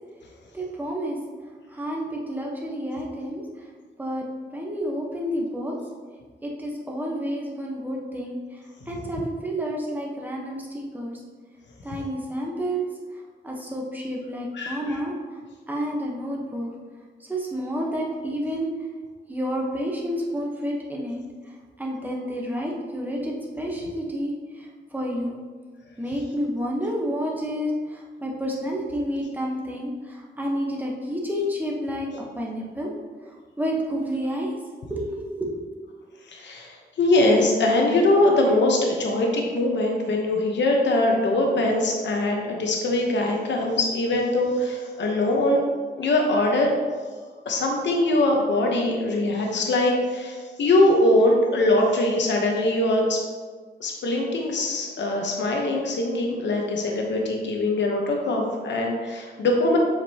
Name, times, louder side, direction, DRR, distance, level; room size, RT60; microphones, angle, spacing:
voice 1, 0.5-1.2 1.7-3.4 4.0-5.8 6.4-8.6 8.9-11.2 11.8-12.8 13.4-15.1 15.7-16.7 17.2-18.7 19.3-21.2 21.8-25.4 26.0-32.9 33.6-34.5 34.9-35.6, equal, 10° right, -2 dB, 1.0 m, -30 dB
voice 2, 36.3-45.6 46.0-46.7 47.5-53.2 53.8-59.8, left 1 dB, 85° left, 1 dB, 0.9 m, -22 dB
7.4 x 5.1 x 2.8 m, 1.5 s
wide cardioid pair, 160°, 18 cm